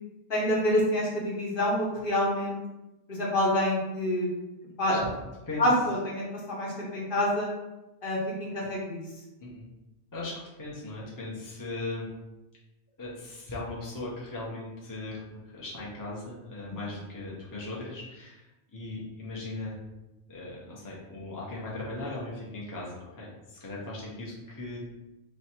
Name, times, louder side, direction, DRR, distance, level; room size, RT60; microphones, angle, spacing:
voice 1, 0.3-2.6 3.1-4.3 4.8-5.0 5.6-7.5 8.0-9.0, left 1 dB, 50° left, -4 dB, 1.2 m, -27 dB
voice 2, 10.1-12.1 13.0-18.5 18.7-19.7 20.3-24.8, left 2 dB, 20° left, -5 dB, 0.8 m, -38 dB
3.2 x 3.1 x 4.4 m, 1.0 s
omnidirectional pair, 1.2 m